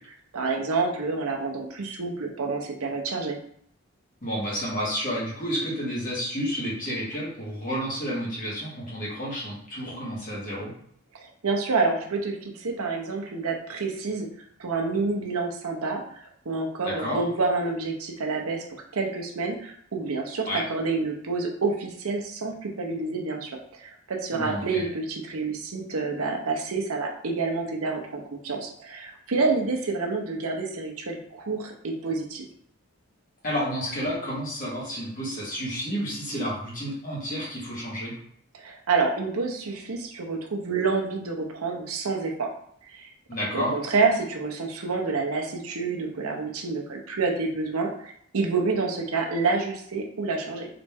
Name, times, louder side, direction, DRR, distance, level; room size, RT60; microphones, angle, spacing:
voice 1, 0.3-3.4 11.1-14.3 14.6-18.6 18.9-23.5 23.8-32.5 38.5-42.5 42.9-43.1 43.5-50.7, right 4 dB, 80° right, 1 dB, 0.8 m, -28 dB
voice 2, 4.2-10.7 16.8-17.2 20.4-20.6 24.3-24.8 33.4-38.1 43.3-43.7, equal, 40° left, -6 dB, 1.7 m, -30 dB
3.9 x 3.1 x 3.5 m, 0.66 s
head